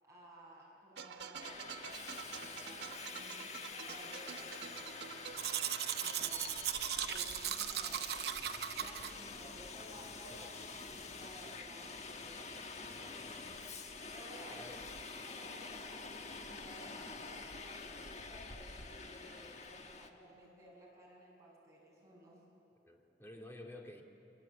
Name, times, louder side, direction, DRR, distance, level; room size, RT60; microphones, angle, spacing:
voice 1, 0.0-5.3 5.9-8.2 8.7-12.4 12.7-13.4 14.1-14.6 15.2-22.5, right 1 dB, 20° right, -4 dB, 7.6 m, -57 dB
sound 1, 1.0-6.7, right 7 dB, 80° right, 1.2 m, -48 dB
Subway metro underground, 1.4-20.1, left 4 dB, 40° left, 1.4 m, -47 dB
Domestic sounds home sounds, 5.4-9.1, right 10 dB, 65° right, 0.8 m, -37 dB
voice 2, 13.1-13.5 14.5-14.8 22.8-24.0, left 1 dB, 15° left, 1 dB, 2.5 m, -52 dB
29.0 x 22.5 x 8.4 m, 2.9 s
head